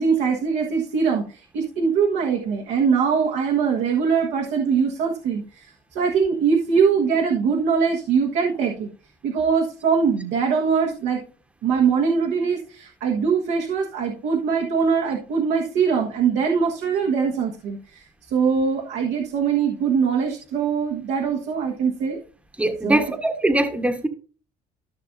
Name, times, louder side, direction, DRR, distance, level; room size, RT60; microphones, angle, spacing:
voice 1, 0.0-5.7 5.9-8.9 9.2-11.2 11.6-18.0 18.3-22.2 22.8-23.0, right 6 dB, 85° right, 1.4 m, -22 dB
voice 2, 22.6-24.1, right 1 dB, 5° right, 1.1 m, -22 dB
14.0 x 5.9 x 2.6 m
cardioid pair, 110°, 17 cm